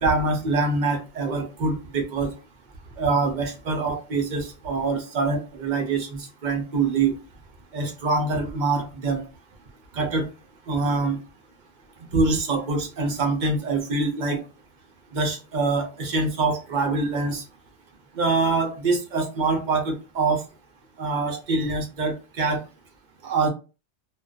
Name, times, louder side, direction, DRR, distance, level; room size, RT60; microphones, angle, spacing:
voice 1, 0.0-2.3 3.0-7.1 7.7-9.2 9.9-10.3 10.7-11.2 12.1-14.4 15.1-17.4 18.1-20.4 21.0-22.6 23.2-23.5, right 3 dB, 50° right, 4 dB, 0.7 m, -24 dB
2.4 x 2.2 x 2.3 m, 0.31 s
omnidirectional pair, 1.1 m